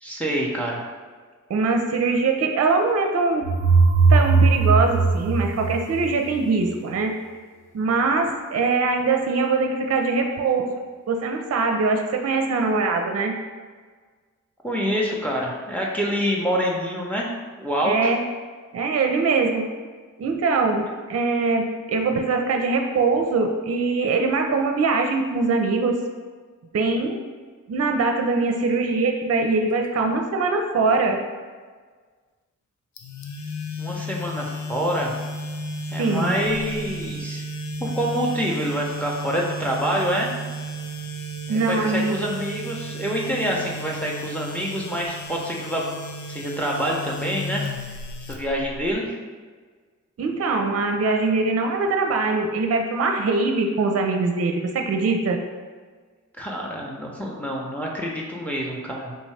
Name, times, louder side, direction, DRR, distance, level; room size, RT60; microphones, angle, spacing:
voice 1, 0.0-0.9 14.6-18.1 33.8-35.1 35.9-37.4 37.8-40.3 41.5-45.8 46.3-48.0 48.3-49.2 56.4-59.2, equal, 5° left, -2 dB, 0.7 m, -26 dB
voice 2, 1.5-3.5 4.1-7.1 7.7-10.7 11.1-13.3 17.8-18.2 18.7-19.6 20.2-26.0 26.7-27.2 27.7-31.2 36.0-36.4 41.5-42.2 50.2-55.4, right 3 dB, 50° right, 4 dB, 0.5 m, -22 dB
sound 1, 3.4-6.3, right 4 dB, 40° left, 0.9 m, -18 dB
sound 2, 33.0-48.9, equal, 65° left, 0.5 m, -33 dB
3.6 x 2.6 x 3.2 m, 1.5 s
cardioid pair, 40°, 32 cm